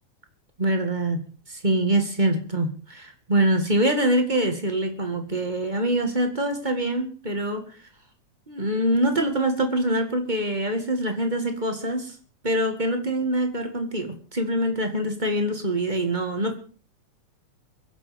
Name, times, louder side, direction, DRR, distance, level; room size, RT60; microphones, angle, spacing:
voice 1, 0.6-1.2 1.5-7.6 8.5-12.1 12.4-16.5, right 1 dB, 20° right, 5 dB, 1.6 m, -24 dB
23.5 x 8.4 x 5.1 m, 0.40 s
omnidirectional pair, 3.5 m